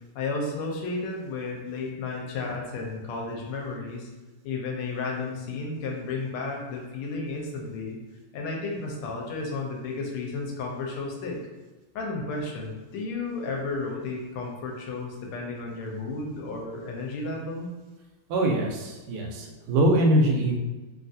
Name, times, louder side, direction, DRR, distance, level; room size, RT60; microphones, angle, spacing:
voice 1, 0.1-4.1 4.4-8.0 8.3-11.4 11.9-17.7, left 3 dB, 80° left, 0 dB, 1.5 m, -33 dB
voice 2, 18.3-20.6, right 1 dB, 90° right, 1 dB, 1.6 m, -23 dB
3.8 x 2.4 x 2.6 m, 1.2 s
omnidirectional pair, 2.4 m